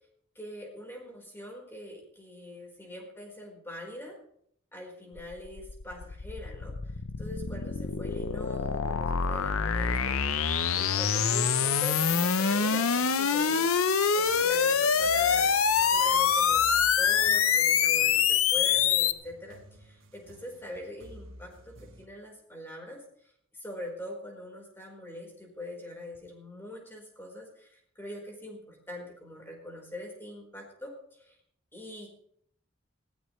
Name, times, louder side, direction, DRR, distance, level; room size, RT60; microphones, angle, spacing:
voice 1, 0.3-4.2 4.7-6.9 7.2-10.4 10.7-13.7 14.1-31.4 31.7-32.1, equal, 10° left, -1 dB, 4.6 m, -43 dB
sound 1, 5.2-19.1, left 7 dB, 90° left, 0.8 m, -25 dB
sound 2, 14.2-22.1, right 1 dB, 70° right, 1.5 m, -51 dB
20.5 x 16.0 x 3.3 m, 0.67 s
head